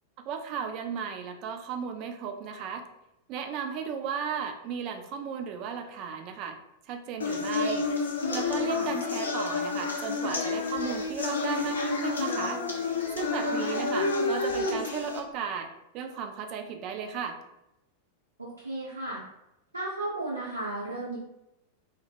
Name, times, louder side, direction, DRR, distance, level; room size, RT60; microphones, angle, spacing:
voice 1, 0.3-2.8 3.3-6.6 6.9-7.9 8.3-12.6 13.2-17.4, right 7 dB, 40° right, 5 dB, 0.3 m, -35 dB
sound 1, 7.2-15.2, left 4 dB, 70° left, 0.4 m, -29 dB
voice 2, 13.4-13.8 18.4-19.2 19.7-21.2, right 2 dB, 80° right, -8 dB, 0.6 m, -34 dB
2.0 x 2.0 x 3.2 m, 0.88 s
figure-of-eight pair, 90°, 0 cm